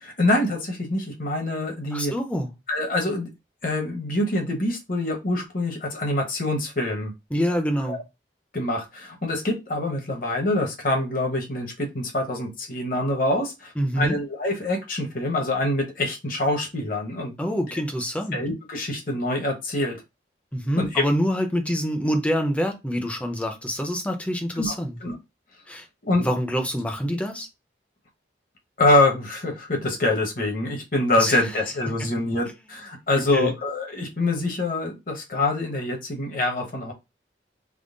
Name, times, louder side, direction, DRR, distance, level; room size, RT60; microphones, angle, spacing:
voice 1, 0.0-2.1 2.7-3.3 3.6-7.1 7.9-8.0 8.5-17.3 17.7-17.8 18.3-20.0 20.8-21.0 24.6-24.7 25.0-25.2 26.1-26.3 28.8-36.9, left 2 dB, 50° left, 1.0 m, -25 dB
voice 2, 1.9-2.5 7.3-8.0 13.8-14.2 17.4-18.4 20.5-24.9 25.7-25.9 26.2-27.5 31.2-31.4 32.0-32.1 33.2-33.5, equal, 10° left, 0.6 m, -26 dB
3.7 x 2.0 x 3.7 m
head